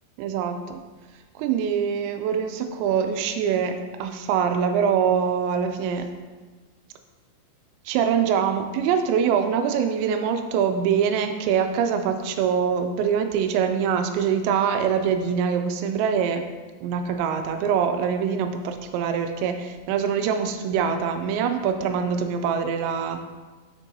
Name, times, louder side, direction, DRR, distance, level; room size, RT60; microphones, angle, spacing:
voice 1, 0.2-0.8 1.4-6.1 7.9-16.4 16.8-23.2, right 7 dB, 85° right, 7 dB, 2.8 m, -24 dB
7.2 x 6.6 x 2.7 m, 1.3 s
omnidirectional pair, 5.2 m